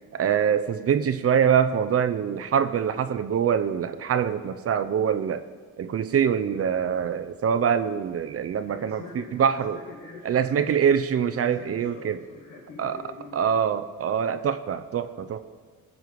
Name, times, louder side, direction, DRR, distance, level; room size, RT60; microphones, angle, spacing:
voice 1, 0.1-5.4 5.8-9.8 10.2-12.2 12.8-13.0 13.3-15.5, right 8 dB, 50° right, 11 dB, 0.8 m, -24 dB
voice 2, 8.6-10.9 11.4-13.5, left 3 dB, 85° left, -4 dB, 2.1 m, -44 dB
18.5 x 7.5 x 4.8 m, 1.5 s
cardioid pair, 90°, 30 cm